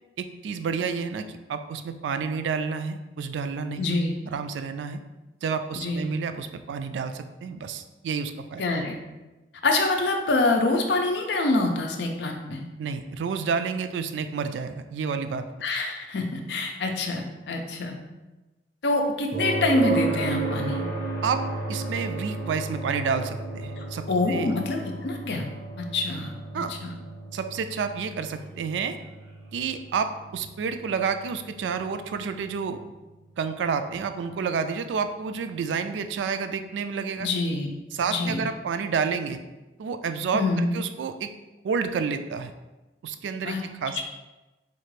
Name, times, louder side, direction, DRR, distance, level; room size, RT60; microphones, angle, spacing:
voice 1, 0.2-4.0 4.3-5.0 5.4-8.6 12.8-15.4 21.2-21.4 21.7-24.5 26.5-26.7 27.3-29.0 29.5-32.8 33.4-37.3 37.9-39.4 39.8-41.3 41.6-42.5 43.0-43.5 43.8-44.0, right 5 dB, 90° right, 9 dB, 0.3 m, -29 dB
voice 2, 3.8-4.2 5.7-6.0 8.6-9.0 9.6-12.6 15.6-18.0 18.8-20.8 23.8-25.5 25.9-26.3 26.7-27.0 37.2-37.8 38.1-38.5 40.3-40.7 43.4-43.6 44.0-44.1, left 2 dB, 70° left, 3 dB, 0.5 m, -26 dB
sound 1, 19.3-33.2 35.4-35.5, right 3 dB, 70° right, 1.1 m, -33 dB
4.3 x 2.4 x 3.2 m, 1.1 s
head